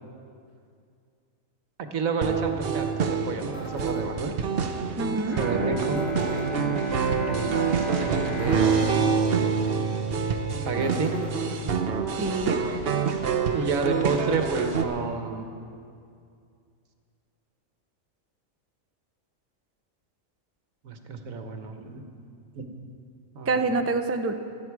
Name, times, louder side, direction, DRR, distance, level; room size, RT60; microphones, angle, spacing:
voice 1, 1.9-4.3 5.4-6.2 7.2-7.7 8.0-9.6 10.2-10.4 10.7-11.3 13.5-15.5 20.8-22.0 22.5-22.7 23.3-23.6, right 4 dB, 85° right, 6 dB, 1.6 m, -30 dB
sound 1, 2.2-14.8, right 6 dB, 50° right, 1.0 m, -27 dB
sound 2, 3.5-4.1 6.0-6.5 8.4-8.9 10.8-11.3, right 2 dB, 65° left, 4.0 m, -41 dB
voice 2, 5.0-5.4 12.2-12.6 23.5-24.3, right 3 dB, 15° right, 6 dB, 0.5 m, -26 dB
Bowed string instrument, 5.3-10.9, right 2 dB, ahead, 3.9 m, -31 dB
26.5 x 9.8 x 4.8 m, 2.4 s
omnidirectional pair, 1.4 m